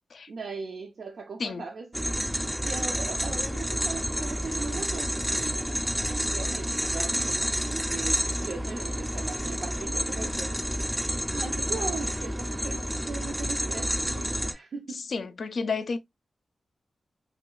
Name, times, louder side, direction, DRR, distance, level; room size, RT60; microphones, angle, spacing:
voice 1, 0.3-2.1 2.6-10.6 11.3-15.0, right 4 dB, 90° right, 0.5 m, -39 dB
sound 1, 1.9-14.5, equal, 5° right, 0.5 m, -29 dB
voice 2, 15.1-16.0, left 4 dB, 70° left, 0.4 m, -31 dB
3.2 x 3.0 x 2.2 m
wide cardioid pair, 110°, 0 cm